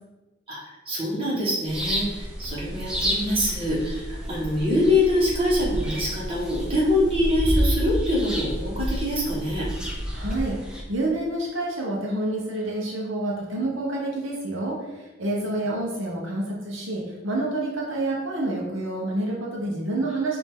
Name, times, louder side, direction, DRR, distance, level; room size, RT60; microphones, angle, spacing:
voice 1, 0.5-9.7 15.4-15.6, left 1 dB, 25° right, -6 dB, 1.4 m, -24 dB
sound 1, 1.7-10.8, equal, 5° right, 0.5 m, -29 dB
voice 2, 10.1-20.4, right 2 dB, 75° right, -3 dB, 0.9 m, -28 dB
5.2 x 2.8 x 3.6 m, 1.1 s
head